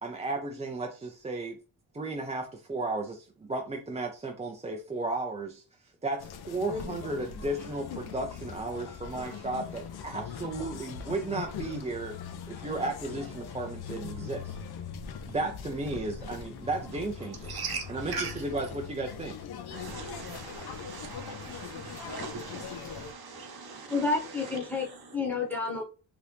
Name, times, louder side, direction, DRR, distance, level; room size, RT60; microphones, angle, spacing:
voice 1, 0.0-1.6 1.9-5.6 6.0-12.2 12.5-14.5 15.3-17.5 17.9-18.1 18.4-19.4, right 2 dB, 15° right, 0.4 m, -34 dB
sound 1, 6.2-23.1, left 7 dB, 60° left, 0.6 m, -41 dB
voice 2, 17.4-18.5 19.7-25.2, right 4 dB, 60° right, 0.9 m, -40 dB
voice 3, 23.3-25.8, left 3 dB, 5° left, 0.9 m, -31 dB
2.9 x 2.5 x 3.3 m
cardioid pair, 110°, 43 cm